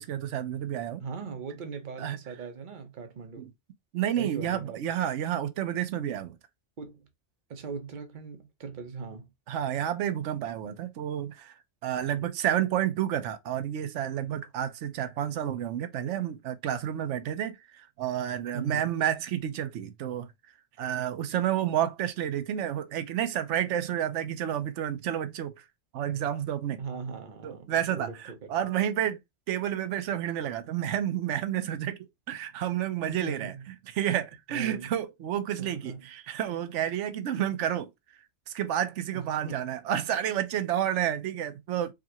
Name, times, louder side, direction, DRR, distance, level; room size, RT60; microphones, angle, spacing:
voice 1, 0.0-1.0 2.0-2.2 3.4-3.5 3.9-6.4 9.5-20.3 20.8-25.6 25.9-26.8 27.4-29.2 29.5-33.5 33.9-37.9 38.5-41.9, right 10 dB, 80° right, 1.0 m, -30 dB
voice 2, 1.0-3.5 4.2-4.8 6.8-7.1 7.5-9.3 18.5-18.9 26.8-28.5 33.1-33.6 34.5-34.9 35.6-36.1 39.1-39.7, right 5 dB, 45° right, 0.9 m, -39 dB
4.9 x 2.5 x 2.9 m
omnidirectional pair, 1.2 m